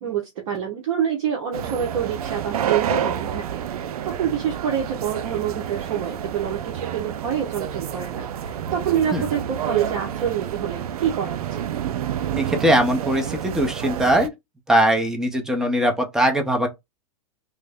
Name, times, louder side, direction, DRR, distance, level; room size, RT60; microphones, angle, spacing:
voice 1, 0.0-11.6, right 9 dB, 60° right, 0.8 m, -27 dB
sound 1, 1.5-14.3, right 9 dB, 85° right, 0.5 m, -29 dB
voice 2, 12.4-14.3 14.7-16.7, right 1 dB, 5° right, 0.6 m, -20 dB
3.2 x 2.1 x 3.5 m
hypercardioid pair, 130°, 19 cm